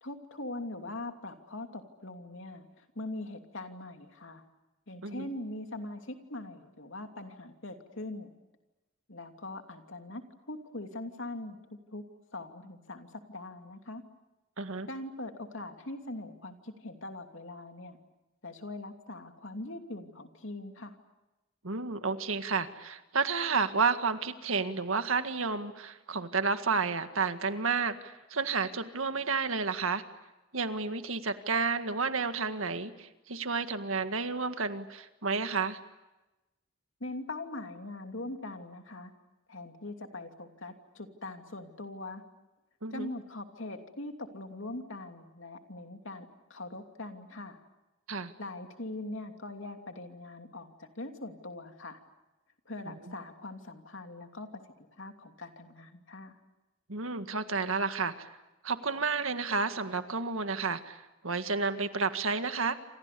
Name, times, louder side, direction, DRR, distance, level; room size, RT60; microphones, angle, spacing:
voice 1, 0.0-4.4 4.9-8.3 9.1-10.2 10.5-12.0 12.3-14.0 14.9-18.0 18.4-21.0 37.0-39.1 39.5-42.2 42.9-47.6 48.4-52.0 52.6-56.4, left 2 dB, 70° left, 5 dB, 2.9 m, -42 dB
voice 2, 14.6-14.9 21.6-30.0 30.5-35.8 42.8-43.1 48.1-48.3 52.9-53.1 56.9-58.3 58.6-62.7, right 4 dB, 85° right, 9 dB, 1.8 m, -31 dB
28.5 x 27.5 x 6.9 m, 1.0 s
head